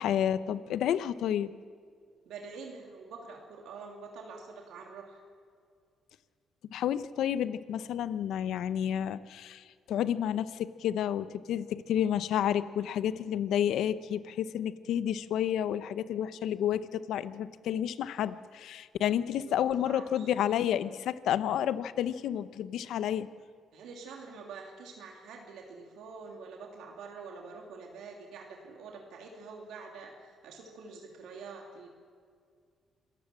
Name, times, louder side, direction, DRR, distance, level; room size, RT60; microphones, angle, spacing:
voice 1, 0.0-1.5 6.7-23.3, left 10 dB, 80° left, 15 dB, 0.8 m, -30 dB
voice 2, 2.3-5.2 19.4-20.3 23.7-31.9, right 4 dB, 85° right, 1 dB, 2.8 m, -46 dB
26.5 x 14.0 x 7.5 m, 2.1 s
cardioid pair, 90°, 0 cm